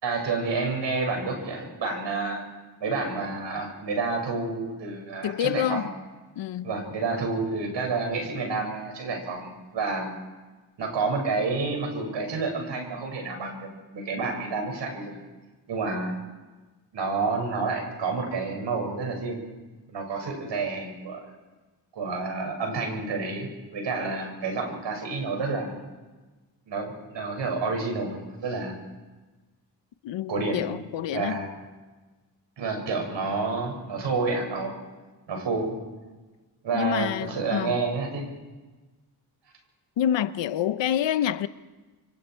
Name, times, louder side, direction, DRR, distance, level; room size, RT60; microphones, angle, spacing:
voice 1, 0.0-2.4 2.8-5.9 6.6-10.2 10.8-15.2 15.7-16.1 16.9-19.4 19.9-21.3 21.9-25.8 26.7-28.8 30.3-30.7 31.1-31.5 32.6-34.8 35.3-35.8 36.6-38.3, right 4 dB, 80° right, 6.1 m, -29 dB
voice 2, 5.2-5.9 6.4-6.7 30.0-31.4 36.7-37.7 40.0-41.5, left 10 dB, 80° left, 0.9 m, -27 dB
29.0 x 24.5 x 4.6 m
cardioid pair, 60°, 43 cm